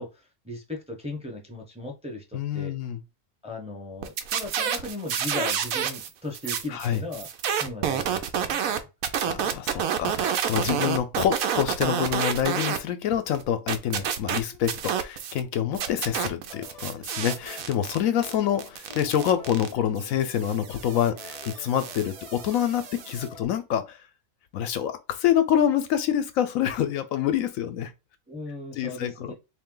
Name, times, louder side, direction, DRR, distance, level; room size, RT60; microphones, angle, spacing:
voice 1, 0.0-2.7 3.4-8.9 10.6-10.9 13.9-14.1 28.3-29.3, left 2 dB, 5° right, 0.6 m, -37 dB
voice 2, 2.3-3.0 6.7-7.0 9.3-24.0 24.5-27.9 28.8-29.3, left 10 dB, 85° left, 1.0 m, -26 dB
sound 1, 4.0-6.1 6.3-12.8 13.1-15.4 15.7-23.3, right 8 dB, 90° right, 1.0 m, -29 dB
sound 2, 15.8-23.5, left 4 dB, 55° left, 0.4 m, -47 dB
3.2 x 2.7 x 3.7 m
omnidirectional pair, 1.4 m